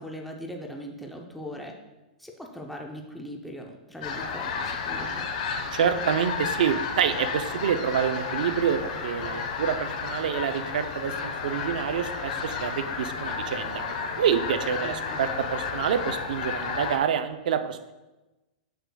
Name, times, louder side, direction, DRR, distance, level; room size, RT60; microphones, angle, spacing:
voice 1, 0.0-1.7 2.2-5.3 14.8-15.2, equal, ahead, 1 dB, 0.6 m, -40 dB
sound 1, 4.0-17.0, left 5 dB, 60° left, 0.9 m, -32 dB
voice 2, 5.7-13.8 14.2-17.8, right 8 dB, 75° right, 9 dB, 0.5 m, -27 dB
8.0 x 6.2 x 2.3 m, 1.1 s
hypercardioid pair, 150°, 5 cm